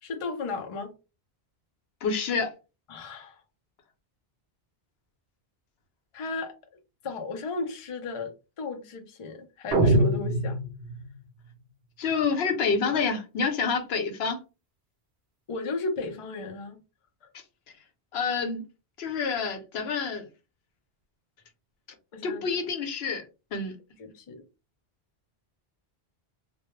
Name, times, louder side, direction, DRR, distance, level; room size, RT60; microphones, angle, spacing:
voice 1, 0.0-0.9 2.9-3.4 6.1-6.5 7.0-10.6 12.9-13.0 15.5-16.8 22.1-22.4 24.0-24.4, left 3 dB, 45° left, 0.4 m, -34 dB
voice 2, 2.0-2.5 12.0-14.4 18.1-18.6 19.0-20.3 22.2-23.3 23.5-23.8, left 5 dB, 75° left, 0.9 m, -28 dB
sound 1, 9.7-11.2, right 1 dB, 70° right, 0.7 m, -23 dB
2.2 x 2.0 x 3.0 m
omnidirectional pair, 1.1 m